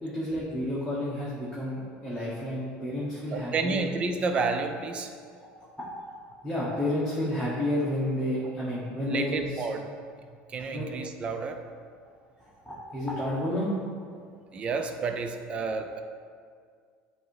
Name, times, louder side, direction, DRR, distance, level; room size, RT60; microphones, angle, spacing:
voice 1, 0.0-3.9 5.4-5.5 5.8-6.1 6.4-9.6 10.7-10.9 12.4-13.8, left 1 dB, 5° left, -9 dB, 1.1 m, -31 dB
voice 2, 3.3-5.2 9.1-9.8 10.5-11.6 14.5-16.0, right 4 dB, 30° right, 6 dB, 0.5 m, -30 dB
7.8 x 2.8 x 4.6 m, 2.1 s
cardioid pair, 140°, 4 cm